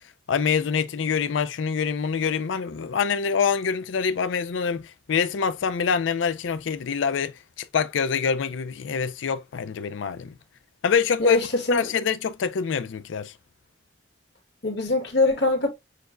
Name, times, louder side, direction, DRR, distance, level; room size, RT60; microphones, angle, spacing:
voice 1, 0.3-10.3 10.8-11.4 11.7-13.3, left 6 dB, 80° left, 0.4 m, -25 dB
voice 2, 11.2-11.9 14.6-15.7, left 2 dB, 60° left, 1.4 m, -23 dB
6.5 x 2.2 x 2.4 m
head